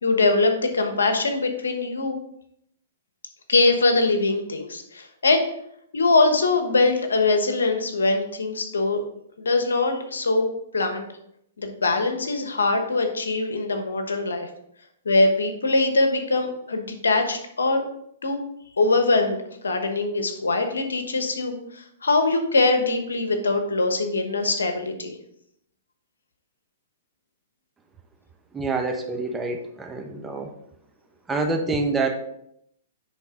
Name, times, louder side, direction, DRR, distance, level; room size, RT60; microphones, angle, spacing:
voice 1, 0.0-2.2 3.5-5.4 5.9-9.0 9.4-10.5 10.7-11.1 11.6-14.5 15.0-17.8 18.2-18.4 18.8-25.1, left 3 dB, 85° left, 6 dB, 1.2 m, -22 dB
voice 2, 28.5-30.5 31.3-32.2, right 3 dB, 10° right, 3 dB, 1.0 m, -26 dB
10.0 x 3.8 x 3.8 m, 0.74 s
hypercardioid pair, 120°, 0 cm